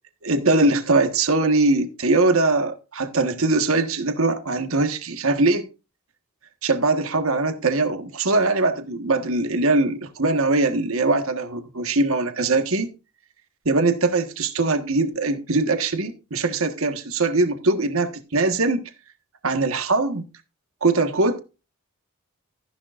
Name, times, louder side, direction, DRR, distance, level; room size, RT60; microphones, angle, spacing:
voice 1, 0.2-5.7 6.6-12.9 13.6-18.9 19.4-20.2 20.8-21.4, right 3 dB, 75° right, 1.5 m, -21 dB
14.0 x 10.5 x 2.5 m
head